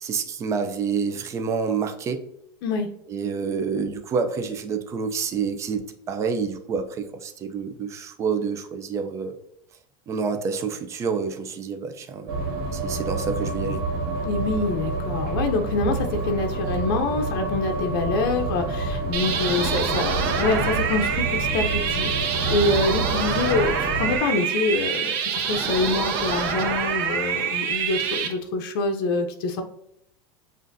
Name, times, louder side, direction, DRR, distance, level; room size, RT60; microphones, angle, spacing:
voice 1, 0.0-2.2 3.1-9.4 10.1-12.4 12.7-13.8, right 5 dB, 25° right, 6 dB, 0.4 m, -28 dB
sound 1, 12.3-24.2, right 2 dB, 85° right, 1.7 m, -28 dB
voice 2, 14.2-29.6, left 3 dB, 70° left, 4 dB, 0.6 m, -26 dB
sound 2, 19.1-28.3, right 7 dB, 60° right, 0.9 m, -26 dB
7.4 x 2.5 x 2.6 m, 0.76 s
supercardioid pair, 150°, 12 cm